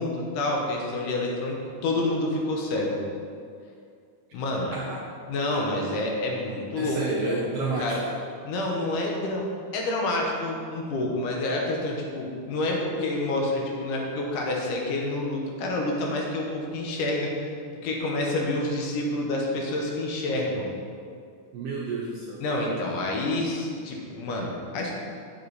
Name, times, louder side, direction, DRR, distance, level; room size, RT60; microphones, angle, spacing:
voice 1, 0.0-3.0 4.3-4.8 5.3-7.0 7.3-8.0 8.4-9.5 9.7-17.3 17.8-20.7 22.4-25.0, left 2 dB, 80° left, -1 dB, 2.7 m, -28 dB
voice 2, 4.5-5.1 6.8-8.0 21.5-22.4, right 3 dB, 75° right, -3 dB, 1.4 m, -31 dB
7.6 x 7.5 x 4.1 m, 2.3 s
omnidirectional pair, 3.6 m